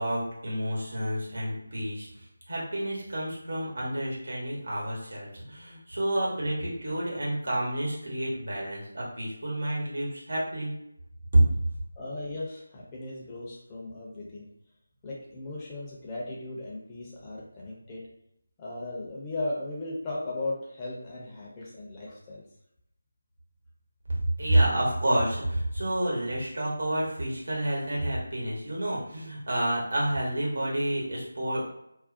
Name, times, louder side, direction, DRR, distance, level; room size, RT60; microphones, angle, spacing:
voice 1, 0.0-2.1 2.5-10.7 11.3-11.4 24.4-31.7, right 1 dB, 65° right, -4 dB, 1.1 m, -29 dB
voice 2, 12.0-14.5 15.0-18.0 18.6-22.5, left 2 dB, 15° left, -5 dB, 0.5 m, -37 dB
2.4 x 2.0 x 2.5 m, 0.80 s
figure-of-eight pair, 160°, 0 cm